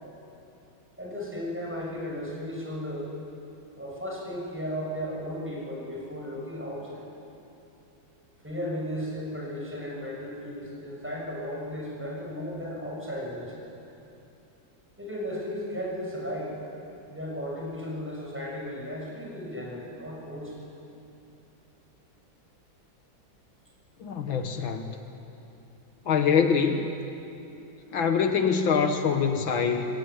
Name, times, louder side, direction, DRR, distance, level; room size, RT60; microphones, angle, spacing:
voice 1, 1.0-3.1 3.8-7.0 8.4-13.5 15.0-16.6 17.1-20.6, equal, 5° right, -3 dB, 6.8 m, -35 dB
voice 2, 24.0-24.9 26.1-26.9 27.9-29.9, left 6 dB, 75° left, 6 dB, 2.1 m, -24 dB
26.0 x 21.0 x 9.9 m, 2.8 s
omnidirectional pair, 2.2 m